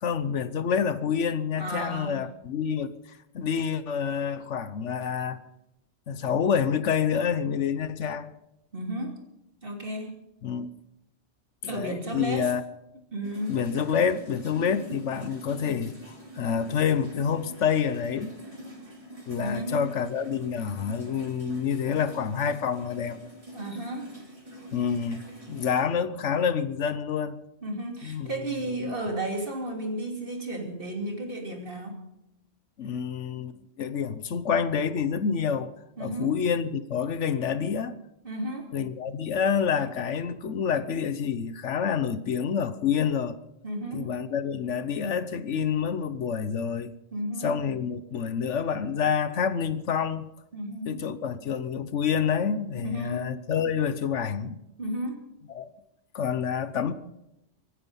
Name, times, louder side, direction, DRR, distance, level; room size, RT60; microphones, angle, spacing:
voice 1, 0.0-2.9 3.3-5.4 6.1-8.3 10.4-10.7 11.6-12.6 13.5-18.3 19.3-23.2 24.7-27.4 28.0-28.3 28.7-28.9 32.8-35.7 36.0-37.9 38.7-43.4 43.9-46.9 47.4-50.3 50.8-54.6 55.5-55.7 56.1-56.9, left 7 dB, 75° left, 1.2 m, -28 dB
voice 2, 1.6-2.3 8.7-9.2 9.6-10.2 11.7-12.5 13.1-13.6 19.4-19.8 23.5-24.1 27.6-32.0 36.0-36.3 38.2-38.7 43.6-44.1 47.1-47.5 50.5-51.0 52.8-53.4 54.8-55.2, right 1 dB, 50° right, 3.1 m, -33 dB
sound 1, 13.2-25.8, right 1 dB, 30° right, 3.4 m, -44 dB
24.0 x 9.8 x 5.5 m
omnidirectional pair, 1.2 m